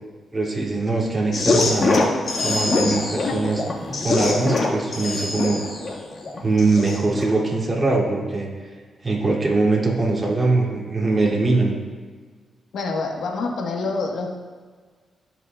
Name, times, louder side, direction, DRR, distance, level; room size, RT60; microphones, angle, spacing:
voice 1, 0.3-2.0 2.4-3.6 4.0-5.6 6.4-8.5 9.0-11.8, right 3 dB, 30° right, -4 dB, 2.7 m, -22 dB
sound 1, 1.3-7.3, left 2 dB, 50° left, 1.8 m, -23 dB
voice 2, 2.8-3.5 4.2-4.4 12.7-14.3, left 3 dB, 80° left, 1 dB, 1.4 m, -28 dB
16.0 x 5.9 x 2.4 m, 1.5 s
cardioid pair, 65°, 0 cm